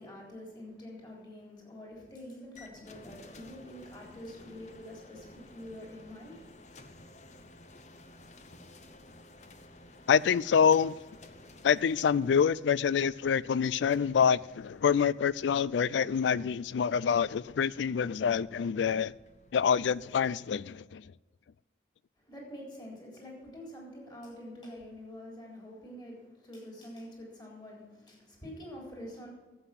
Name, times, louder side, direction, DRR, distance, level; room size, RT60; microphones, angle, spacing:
voice 1, 0.0-6.9 22.2-29.3, left 1 dB, 25° left, 3.7 m, -46 dB
sound 1, 2.5-20.4, left 2 dB, 40° left, 0.9 m, -55 dB
voice 2, 10.1-11.0 11.6-19.1 19.5-21.0, left 7 dB, 90° left, 0.3 m, -26 dB
12.0 x 8.1 x 5.9 m
head